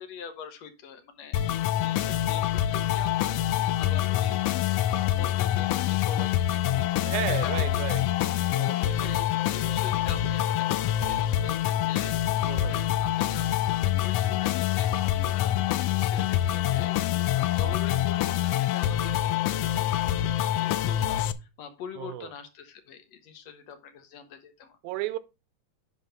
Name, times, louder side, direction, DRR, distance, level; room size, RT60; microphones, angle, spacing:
voice 1, 0.0-1.4 1.8-3.4 3.8-4.4 5.2-7.8 8.8-15.6 15.9-17.0 17.4-24.7, left 7 dB, 70° left, 2.1 m, -44 dB
sound 1, 1.3-21.3, left 12 dB, 85° left, 1.4 m, -26 dB
voice 2, 7.1-8.2 8.5-9.0 12.4-12.8 22.0-22.3 24.8-25.2, right 15 dB, 85° right, 2.0 m, -34 dB
10.5 x 3.6 x 5.6 m
omnidirectional pair, 3.3 m